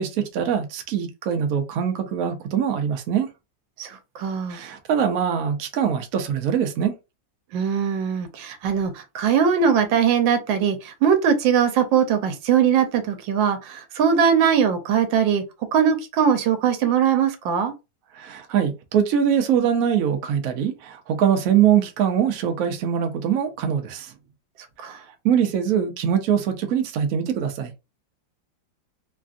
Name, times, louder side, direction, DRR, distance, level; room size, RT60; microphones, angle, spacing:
voice 1, 0.0-3.3 4.5-6.9 18.1-24.1 25.2-27.7, right 8 dB, 65° right, 0.8 m, -23 dB
voice 2, 3.8-4.6 7.5-15.4 15.7-17.7 24.8-25.0, right 7 dB, 85° right, 1.4 m, -21 dB
3.3 x 2.4 x 2.5 m
omnidirectional pair, 2.0 m